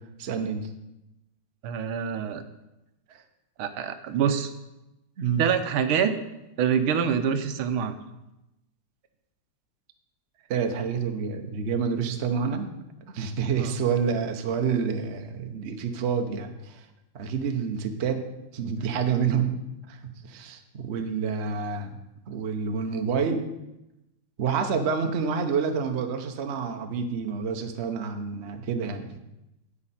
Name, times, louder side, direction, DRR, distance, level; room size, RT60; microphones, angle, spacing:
voice 1, 0.2-0.7 3.1-3.2 5.2-5.4 10.5-12.8 13.1-16.8 17.1-18.2 18.5-19.6 19.9-22.0 22.3-23.5 24.4-29.1, right 6 dB, 60° right, 5 dB, 0.7 m, -28 dB
voice 2, 1.6-2.4 3.6-4.5 5.4-6.2 6.6-8.0 13.6-13.7, right 7 dB, 75° right, 9 dB, 1.5 m, -25 dB
9.8 x 8.6 x 4.3 m, 0.93 s
omnidirectional pair, 2.4 m